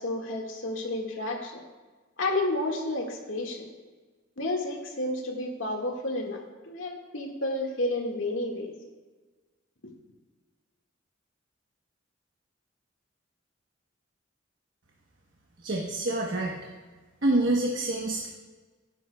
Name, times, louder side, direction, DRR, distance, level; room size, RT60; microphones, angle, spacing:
voice 1, 0.0-1.6 2.2-3.7 4.4-8.7, left 2 dB, 90° left, 0 dB, 1.9 m, -31 dB
voice 2, 15.6-16.5 17.2-18.3, right 2 dB, 65° right, -1 dB, 1.2 m, -26 dB
17.0 x 10.5 x 2.3 m, 1.3 s
head